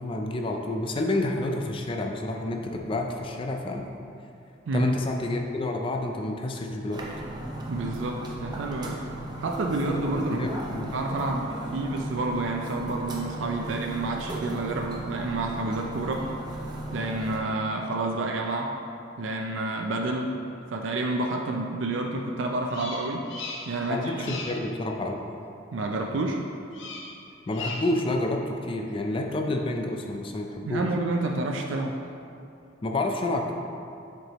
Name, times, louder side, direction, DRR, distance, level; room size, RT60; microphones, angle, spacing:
voice 1, 0.0-3.9 4.7-7.0 10.3-10.9 23.9-25.2 27.5-30.9 32.8-33.5, left 2 dB, 30° left, 2 dB, 0.4 m, -29 dB
sound 1, 6.9-17.4, right 1 dB, 20° right, 0.6 m, -36 dB
voice 2, 7.7-9.0 9.4-16.3 16.9-18.7 19.2-20.3 20.7-23.2 23.7-24.3 25.7-26.4 30.7-32.0, right 2 dB, 75° right, 1 dB, 0.4 m, -29 dB
Bird vocalization bird call bird song, 22.7-23.9 24.1-24.7 26.7-27.2 27.5-28.0, left 3 dB, 70° left, 0.7 m, -38 dB
7.7 x 4.6 x 3.0 m, 2.7 s
head